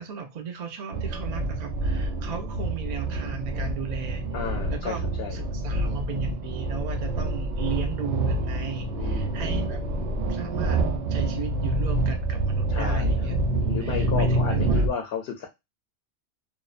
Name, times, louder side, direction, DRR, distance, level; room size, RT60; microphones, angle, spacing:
voice 1, 0.0-5.0 5.3-9.8 10.3-10.8 11.1-14.9, right 6 dB, 60° right, 5 dB, 0.4 m, -36 dB
sound 1, 0.9-14.9, right 2 dB, 80° right, 0.9 m, -27 dB
voice 2, 4.3-5.4 8.9-9.3 12.7-13.1 13.7-15.5, left 6 dB, 65° left, 2 dB, 0.7 m, -33 dB
2.6 x 2.0 x 2.4 m, 0.22 s
omnidirectional pair, 1.2 m